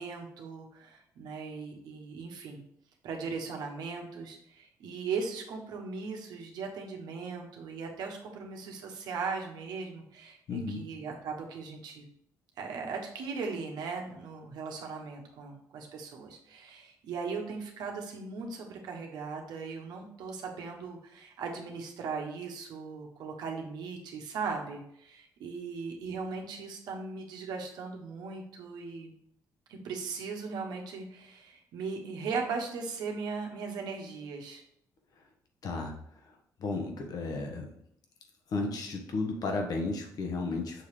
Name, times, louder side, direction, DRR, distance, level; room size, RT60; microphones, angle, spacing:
voice 1, 0.0-2.6 3.0-12.0 12.6-29.1 29.7-34.6, right 5 dB, 80° right, 2 dB, 1.3 m, -38 dB
voice 2, 10.5-10.8 35.6-35.9 36.2-36.3 36.6-37.7 38.5-40.8, left 3 dB, 65° left, 2 dB, 1.3 m, -33 dB
6.5 x 3.3 x 4.9 m, 0.71 s
cardioid pair, 85°, 7 cm